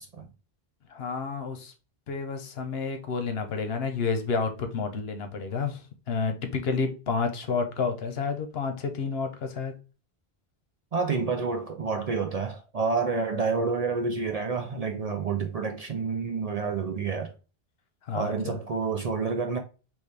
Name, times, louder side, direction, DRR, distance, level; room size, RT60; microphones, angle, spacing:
voice 1, 0.9-1.7 2.1-9.7 18.0-18.6, left 5 dB, 70° left, 1.0 m, -30 dB
voice 2, 10.9-17.3 18.1-19.6, right 4 dB, 50° right, 0.5 m, -29 dB
4.1 x 3.0 x 3.2 m
omnidirectional pair, 1.1 m